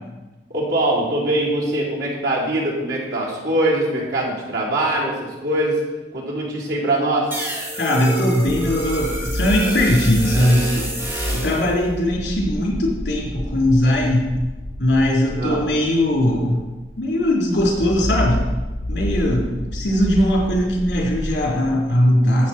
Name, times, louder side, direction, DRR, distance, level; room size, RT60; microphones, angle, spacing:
voice 1, 0.5-5.8 6.1-7.3 15.4-15.7, right 1 dB, 80° right, -6 dB, 4.0 m, -22 dB
sound 1, 7.3-11.7, right 2 dB, 15° right, 1.7 m, -28 dB
voice 2, 7.8-10.9 11.3-14.3 14.8-16.6 17.0-18.4 18.9-22.5, left 1 dB, 70° left, -3 dB, 3.5 m, -19 dB
sound 2, 8.5-21.7, left 1 dB, 55° left, 1.3 m, -29 dB
12.5 x 8.4 x 4.3 m, 1.1 s
head